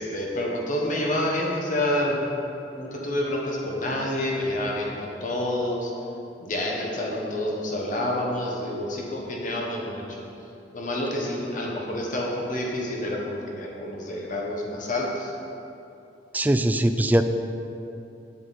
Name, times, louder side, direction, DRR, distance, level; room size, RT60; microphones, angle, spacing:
voice 1, 0.0-2.2 2.8-5.9 6.4-10.2 10.7-15.3, left 1 dB, 50° left, -2 dB, 1.2 m, -28 dB
voice 2, 16.3-17.2, right 1 dB, 10° right, 8 dB, 0.3 m, -21 dB
8.1 x 7.8 x 4.1 m, 2.8 s
head